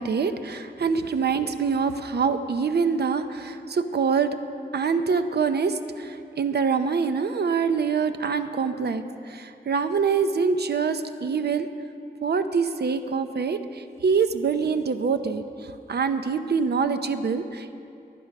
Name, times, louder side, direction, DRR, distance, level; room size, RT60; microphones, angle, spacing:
voice 1, 0.0-4.4 4.7-11.7 12.2-17.7, right 5 dB, 70° right, 9 dB, 0.8 m, -25 dB
19.5 x 11.0 x 5.4 m, 2.6 s
wide cardioid pair, 90°, 18 cm